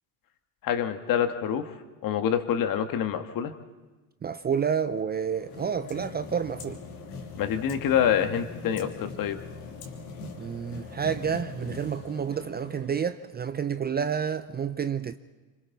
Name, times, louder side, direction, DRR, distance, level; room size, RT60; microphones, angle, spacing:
voice 1, 0.6-1.7 2.0-3.5 7.4-9.4, left 9 dB, 50° left, 1.8 m, -26 dB
voice 2, 4.2-6.8 10.4-15.2, right 7 dB, 20° right, 0.6 m, -29 dB
sound 1, 5.1-13.4, left 4 dB, 80° left, 3.2 m, -41 dB
26.5 x 26.0 x 4.1 m
hypercardioid pair, 90°, 45 cm